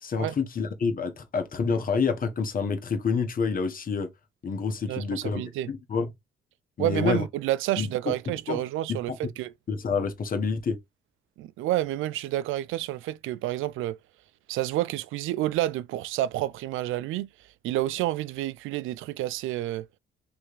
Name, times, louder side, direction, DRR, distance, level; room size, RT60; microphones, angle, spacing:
voice 1, 0.0-4.1 4.4-5.4 5.7-6.1 6.8-7.2 7.8-8.6 8.9-9.0 9.7-10.8, left 5 dB, 45° left, 1.3 m, -28 dB
voice 2, 4.9-5.7 6.8-9.5 11.4-14.0 14.5-17.3 17.6-19.9, right 15 dB, 85° right, 0.4 m, -29 dB
3.4 x 3.2 x 4.7 m
cardioid pair, 90°, 20 cm